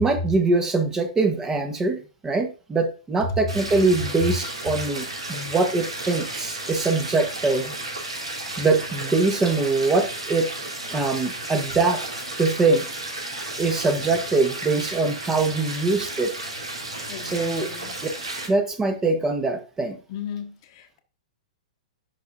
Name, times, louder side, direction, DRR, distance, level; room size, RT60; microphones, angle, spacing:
voice 1, 0.0-7.7 8.6-10.5 10.9-12.0 12.4-12.9 13.6-16.3 17.2-17.7 18.5-20.0, right 3 dB, 15° right, 1.2 m, -23 dB
sound 1, 3.5-18.5, right 2 dB, 75° right, 3.2 m, -33 dB
voice 2, 17.1-18.0 20.1-21.0, left 9 dB, 45° left, 1.2 m, -37 dB
10.5 x 5.8 x 2.6 m
figure-of-eight pair, 105°, 3 cm